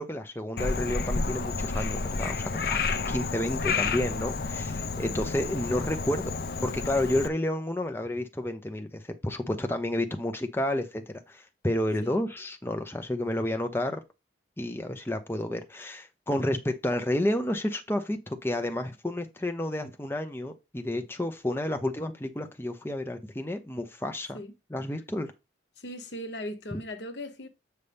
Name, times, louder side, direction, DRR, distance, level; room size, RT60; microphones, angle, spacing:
voice 1, 0.0-6.3 6.6-14.0 14.6-24.4 24.7-25.3, left 1 dB, 10° left, 0.7 m, -30 dB
Frog, 0.6-7.3, left 4 dB, 55° left, 0.6 m, -30 dB
voice 2, 3.6-4.2 12.0-12.2 24.3-24.5 25.8-27.5, left 1 dB, 75° left, 1.1 m, -39 dB
8.1 x 5.5 x 3.4 m
head